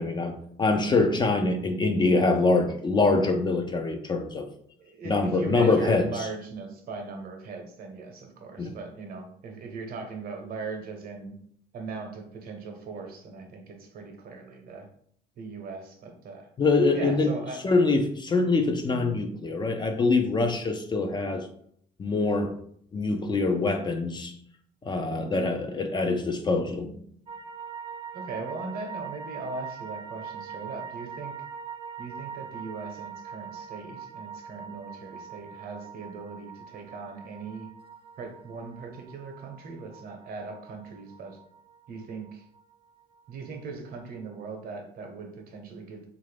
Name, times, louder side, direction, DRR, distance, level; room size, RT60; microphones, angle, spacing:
voice 1, 0.0-4.5 5.0-6.1 8.6-8.7 16.6-17.3 17.6-21.5 22.0-22.5 22.9-24.3 24.8-27.0, left 3 dB, 25° left, 5 dB, 0.4 m, -24 dB
voice 2, 4.8-11.3 11.7-14.9 15.4-16.5 16.9-17.6 25.2-25.5 28.1-31.3 32.0-37.7 38.2-41.4 41.9-42.5 43.3-46.1, right 4 dB, 60° right, 4 dB, 0.8 m, -39 dB
sound 1, 27.3-43.6 43.9-44.0, right 6 dB, 35° right, 0.4 m, -42 dB
3.2 x 2.5 x 3.3 m, 0.64 s
cardioid pair, 110°, 17 cm